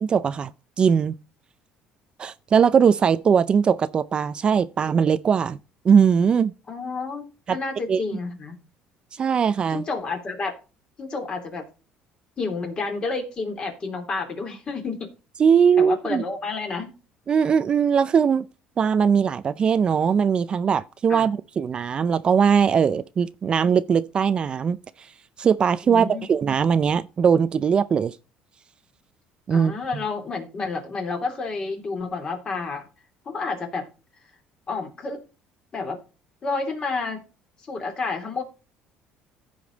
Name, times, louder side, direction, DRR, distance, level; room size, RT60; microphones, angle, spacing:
voice 1, 0.0-0.5 0.8-1.1 2.2-5.6 5.8-6.5 7.5-7.6 7.9-8.0 9.1-9.8 15.4-16.2 17.3-18.4 18.8-25.1 25.4-28.2 29.5-30.0, right 7 dB, 35° right, 0.4 m, -20 dB
voice 2, 6.7-8.6 9.7-10.5 11.0-11.6 12.4-15.1 15.8-16.9 21.1-21.3 25.8-26.3 29.5-32.8 33.2-33.9 34.7-35.2 35.7-36.0 36.4-37.2 37.7-38.4, left 4 dB, 30° left, 3.1 m, -30 dB
15.0 x 5.1 x 3.9 m
cardioid pair, 125°, 3 cm